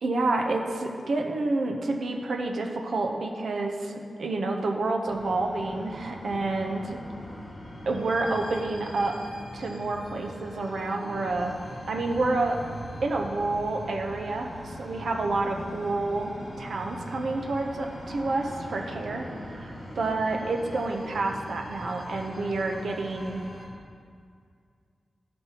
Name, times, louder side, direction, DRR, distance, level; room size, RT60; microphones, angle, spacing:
voice 1, 0.0-7.0 7.9-9.2 9.5-11.5 11.9-12.6 13.0-23.4, right 2 dB, 70° right, 2 dB, 0.7 m, -29 dB
sound 1, 5.1-23.7, equal, 25° left, 2.1 m, -41 dB
13.5 x 5.3 x 3.0 m, 2.2 s
wide cardioid pair, 130°, 0 cm